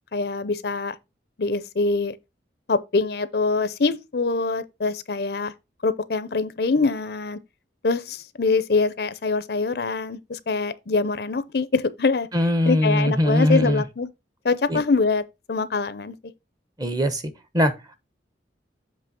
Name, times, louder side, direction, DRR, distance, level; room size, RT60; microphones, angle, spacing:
voice 1, 0.1-0.9 1.4-2.2 2.7-5.5 5.8-7.4 7.8-12.3 12.7-14.1 14.4-15.2 15.5-16.2, left 4 dB, 60° left, 0.6 m, -24 dB
voice 2, 12.3-13.8 14.7-14.8 16.8-17.2 17.5-17.7, left 1 dB, 20° right, 0.9 m, -20 dB
7.6 x 3.2 x 5.9 m
head